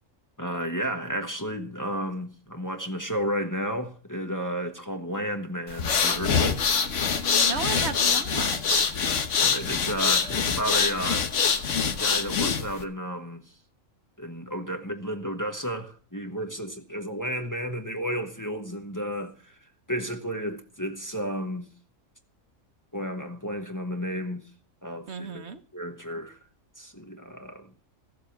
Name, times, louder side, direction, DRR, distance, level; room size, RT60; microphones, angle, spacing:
voice 1, 0.4-6.6 9.4-11.3 11.8-13.4 14.2-19.3 19.9-21.7 22.9-24.4 24.8-25.4 25.7-26.4 26.8-27.7, equal, 15° left, 1.2 m, -32 dB
sound 1, 5.7-12.8, left 6 dB, 70° left, 1.5 m, -24 dB
voice 2, 7.4-8.9 25.1-25.6, right 5 dB, 60° right, 1.2 m, -33 dB
15.0 x 7.7 x 7.1 m
omnidirectional pair, 1.3 m